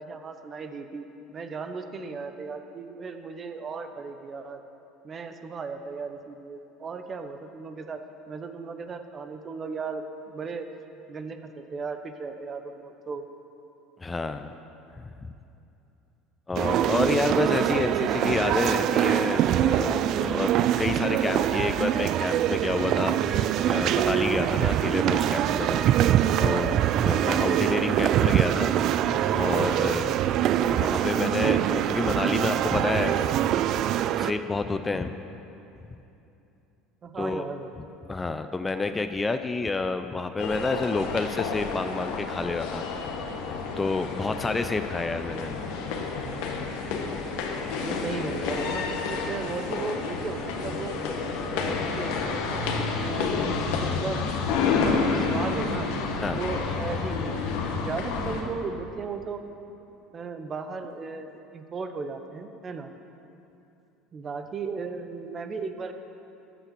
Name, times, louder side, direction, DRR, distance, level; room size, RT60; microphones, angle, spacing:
voice 1, 0.0-4.6 5.0-10.7 11.1-13.3 37.0-37.8 47.8-51.0 51.6-54.2 54.6-55.9 56.3-59.4 60.1-62.9 64.1-65.9, right 4 dB, 35° right, 8 dB, 0.9 m, -36 dB
voice 2, 14.0-14.5 15.0-15.3 16.5-20.5 20.8-25.8 26.4-30.3 30.6-33.3 34.2-35.1 37.2-37.5 38.1-42.8 43.7-45.5 56.2-56.4, left 3 dB, 20° left, 9 dB, 0.5 m, -29 dB
sound 1, 16.6-34.3, right 11 dB, 55° right, 0.4 m, -24 dB
sound 2, 40.4-58.4, left 4 dB, 70° left, 1.2 m, -29 dB
14.0 x 5.7 x 6.9 m, 2.8 s
hypercardioid pair, 75°, 0 cm